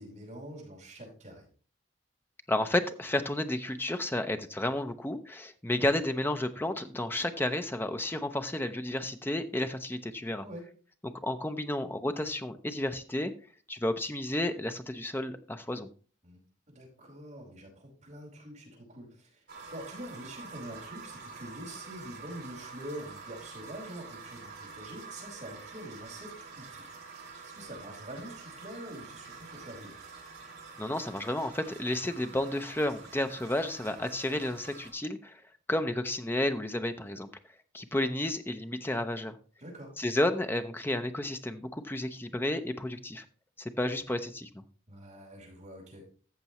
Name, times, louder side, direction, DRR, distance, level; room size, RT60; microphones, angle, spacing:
voice 1, 0.0-1.5 10.4-10.7 16.2-16.4 16.7-26.8 27.5-30.0 39.6-39.9 44.9-46.0, right 1 dB, 40° right, -4 dB, 5.1 m, -45 dB
voice 2, 2.5-10.4 11.0-13.3 13.7-15.9 30.8-35.4 35.7-37.3 37.7-39.4 40.0-43.2 43.6-44.6, left 1 dB, 10° left, 8 dB, 0.6 m, -32 dB
sound 1, 19.5-34.9, right 4 dB, 55° right, 2.6 m, -47 dB
14.0 x 6.8 x 3.0 m, 0.40 s
head